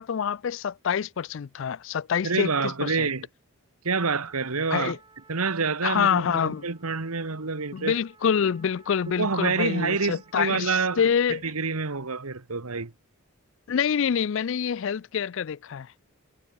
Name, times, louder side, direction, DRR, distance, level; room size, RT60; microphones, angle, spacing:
voice 1, 0.0-2.5 2.8-3.1 4.7-5.0 5.8-6.6 7.7-11.4 13.7-15.9, left 7 dB, 60° left, 0.3 m, -26 dB
voice 2, 2.2-3.3 3.8-5.0 5.3-8.0 9.2-11.0 11.3-12.9, right 4 dB, 80° right, 1.5 m, -27 dB
Trumpet, 4.1-10.7, right 4 dB, 20° right, 4.4 m, -57 dB
head